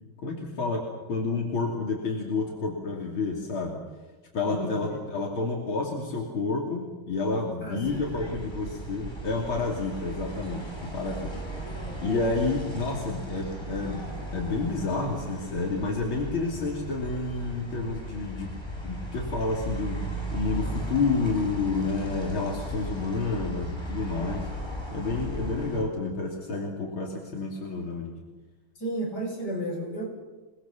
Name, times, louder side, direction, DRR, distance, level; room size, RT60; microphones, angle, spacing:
voice 1, 0.2-3.8 4.3-11.3 11.7-18.5 18.8-24.5 24.9-28.2, left 3 dB, 85° left, 0 dB, 3.8 m, -30 dB
voice 2, 4.4-5.0 7.4-8.4 28.8-30.0, right 1 dB, 50° left, -2 dB, 7.9 m, -33 dB
sound 1, 7.8-25.8, right 1 dB, 10° left, 5.0 m, -36 dB
28.5 x 20.5 x 7.3 m, 1.2 s
omnidirectional pair, 2.2 m